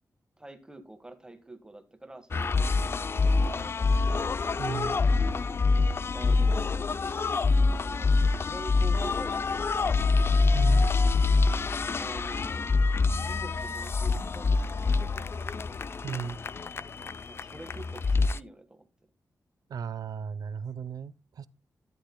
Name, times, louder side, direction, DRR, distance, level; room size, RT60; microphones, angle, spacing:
voice 1, 0.4-4.4 6.1-6.9 7.7-10.1 12.0-12.7 13.2-15.7 17.2-18.9, right 2 dB, 10° right, 1.4 m, -46 dB
sound 1, 2.3-18.4, left 3 dB, 40° left, 0.4 m, -26 dB
voice 2, 4.6-5.0 10.5-10.9 16.0-16.4 19.7-21.5, right 7 dB, 80° right, 0.6 m, -35 dB
13.5 x 10.5 x 2.2 m
wide cardioid pair, 150°, 6 cm